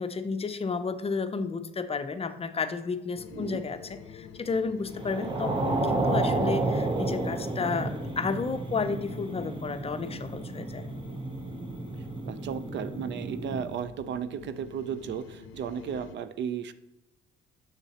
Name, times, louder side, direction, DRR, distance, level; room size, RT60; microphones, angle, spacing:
voice 1, 0.0-10.9, left 4 dB, 30° left, 10 dB, 0.5 m, -32 dB
sound 1, 3.1-16.2, left 7 dB, 85° left, 0.6 m, -48 dB
voice 2, 3.3-3.6 12.2-16.7, right 8 dB, 65° right, 13 dB, 0.5 m, -35 dB
sound 2, 4.9-13.7, right 2 dB, 25° right, 0.7 m, -31 dB
6.9 x 6.6 x 2.8 m, 0.95 s
cardioid pair, 90°, 20 cm